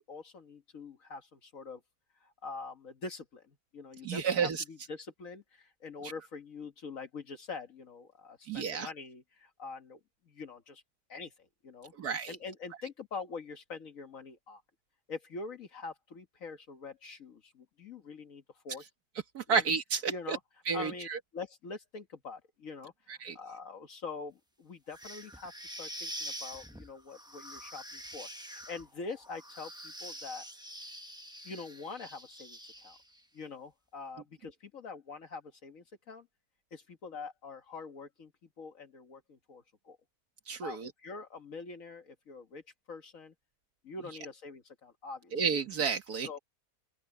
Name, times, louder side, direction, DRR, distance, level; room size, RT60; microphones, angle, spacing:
voice 1, 0.0-1.8 2.2-10.0 10.2-10.8 11.1-11.9 12.3-14.6 15.1-18.8 19.5-19.6 20.1-20.4 20.7-21.1 21.3-30.5 31.4-33.0 33.3-36.3 36.7-38.3 38.6-40.0 40.6-42.6 42.9-43.3 43.8-45.3 46.2-46.4, left 4 dB, 60° left, 1.8 m, -44 dB
voice 2, 4.0-4.6 6.0-6.1 8.5-8.9 12.0-12.4 19.3-20.4 20.7-21.2 23.1-23.4 40.5-40.9 45.3-46.3, right 6 dB, 85° right, 2.1 m, -31 dB
sound 1, 24.9-33.2, equal, 5° right, 1.1 m, -45 dB
open air
omnidirectional pair, 1.6 m